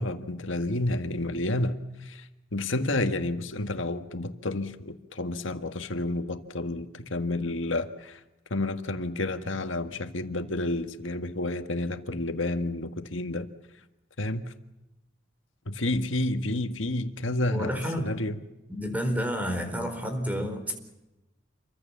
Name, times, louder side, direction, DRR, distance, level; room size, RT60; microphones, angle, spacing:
voice 1, 0.0-2.3 2.5-8.2 8.5-13.5 14.2-14.5 15.7-18.4, left 2 dB, 80° left, 8 dB, 1.7 m, -30 dB
voice 2, 17.5-18.1 18.7-20.7, equal, 10° right, 6 dB, 4.2 m, -30 dB
28.0 x 24.0 x 7.2 m, 0.97 s
head